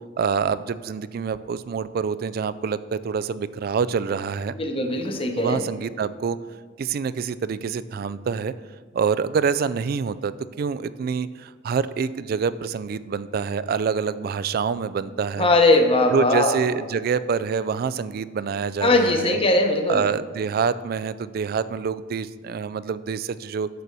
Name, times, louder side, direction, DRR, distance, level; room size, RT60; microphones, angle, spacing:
voice 1, 0.2-4.6 5.4-6.4 6.8-8.5 8.9-15.5 16.1-19.4 19.9-23.7, right 6 dB, 55° right, 15 dB, 0.3 m, -26 dB
voice 2, 4.5-5.6 15.4-16.6 18.8-20.0, left 2 dB, 30° left, 4 dB, 0.9 m, -20 dB
6.8 x 6.1 x 6.6 m, 1.5 s
head